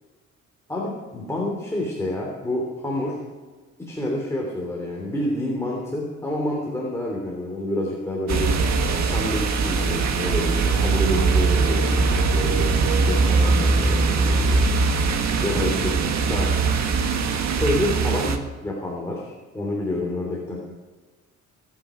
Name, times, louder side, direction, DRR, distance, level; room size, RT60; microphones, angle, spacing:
voice 1, 0.7-3.2 3.8-8.5 8.9-14.6 15.4-16.0 16.3-16.5 17.6-20.6, left 1 dB, 10° left, -3 dB, 3.3 m, -28 dB
sound 1, 8.3-18.4, right 4 dB, 60° right, 1.7 m, -21 dB
25.0 x 9.9 x 5.2 m, 1.3 s
cardioid pair, 140°, 31 cm